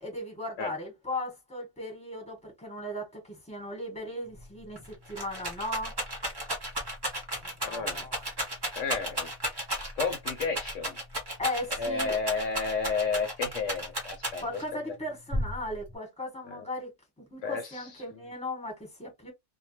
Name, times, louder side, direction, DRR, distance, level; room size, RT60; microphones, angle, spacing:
voice 1, 0.0-5.9 7.3-8.3 11.4-12.1 14.4-16.9 17.2-19.3, left 1 dB, 5° left, 1.1 m, -37 dB
Rattle, 4.4-4.5 4.8-14.7 15.3-15.9, equal, 25° right, 0.5 m, -34 dB
voice 2, 7.6-8.1 8.8-9.6 9.9-11.0 11.7-14.6 16.5-16.6 17.4-18.2, left 4 dB, 70° left, 0.9 m, -32 dB
2.2 x 2.2 x 2.9 m
omnidirectional pair, 1.4 m